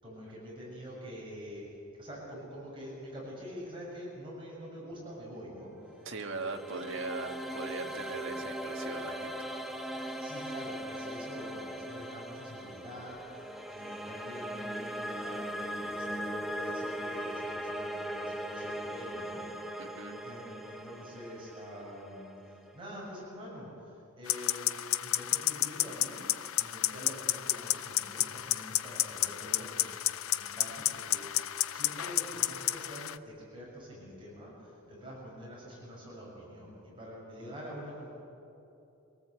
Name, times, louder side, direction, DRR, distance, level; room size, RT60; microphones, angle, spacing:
voice 1, 0.0-1.7 2.0-6.1 9.9-20.0 20.2-24.7 25.0-38.1, equal, 25° right, -5 dB, 6.9 m, -46 dB
sound 1, 5.9-23.0, equal, ahead, 1.0 m, -39 dB
voice 2, 6.1-9.6 19.8-20.2, right 3 dB, 60° right, 3 dB, 1.7 m, -39 dB
sound 2, 24.3-33.2, left 14 dB, 75° left, 0.5 m, -32 dB
24.0 x 18.0 x 8.1 m, 2.9 s
head